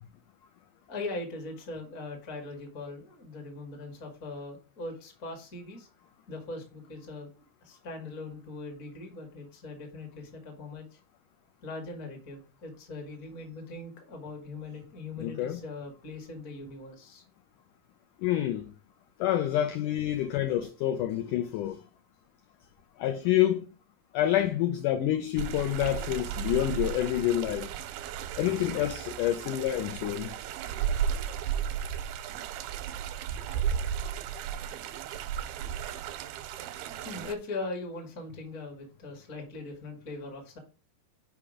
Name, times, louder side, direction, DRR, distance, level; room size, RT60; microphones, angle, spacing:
voice 1, 0.9-5.9 6.3-11.0 11.6-17.2 22.6-22.7 37.0-40.6, left 3 dB, 35° left, 1.3 m, -40 dB
voice 2, 15.2-15.6 18.2-18.7 19.2-21.8 23.0-23.7 24.1-27.7 28.4-30.3, left 12 dB, 85° left, 1.8 m, -28 dB
sound 1, 25.4-37.3, right 8 dB, 85° right, 2.5 m, -34 dB
5.9 x 5.2 x 4.9 m
omnidirectional pair, 4.4 m